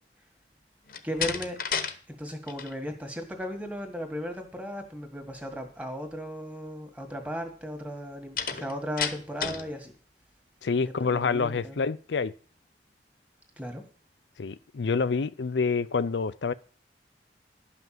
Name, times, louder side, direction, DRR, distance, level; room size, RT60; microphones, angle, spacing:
Slam, 0.9-2.0 2.3-2.7 8.4-9.7, left 7 dB, 55° left, 1.0 m, -31 dB
voice 1, 1.0-1.6 2.1-9.9 10.8-11.8 13.6-13.9, equal, 10° right, 1.8 m, -36 dB
voice 2, 10.6-12.3 14.4-16.5, left 5 dB, 90° left, 0.5 m, -27 dB
12.0 x 5.8 x 7.7 m
head